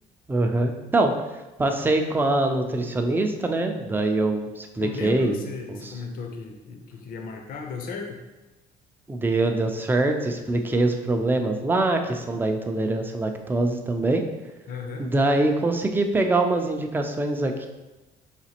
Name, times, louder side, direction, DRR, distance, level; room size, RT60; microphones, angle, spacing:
voice 1, 0.3-1.1 1.6-5.4 5.7-5.9 9.1-14.2 15.0-17.7, right 2 dB, 10° right, 4 dB, 0.4 m, -24 dB
voice 2, 4.8-8.2 14.7-15.1, left 4 dB, 60° left, 3 dB, 0.6 m, -35 dB
5.0 x 2.4 x 2.8 m, 1.1 s
cardioid pair, 110°, 17 cm